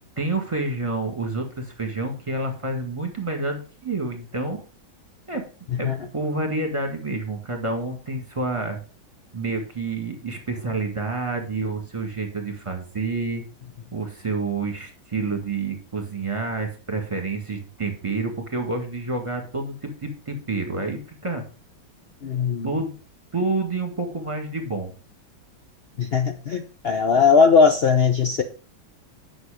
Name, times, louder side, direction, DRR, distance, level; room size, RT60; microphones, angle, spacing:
voice 1, 0.2-4.6 5.3-5.4 5.8-8.8 9.3-13.5 13.9-21.4 22.6-22.9 23.3-24.9, right 3 dB, 15° right, 4 dB, 1.7 m, -28 dB
voice 2, 22.2-22.7 26.0-28.4, left 5 dB, 75° left, 5 dB, 0.5 m, -19 dB
9.5 x 6.3 x 5.0 m, 0.36 s
omnidirectional pair, 2.2 m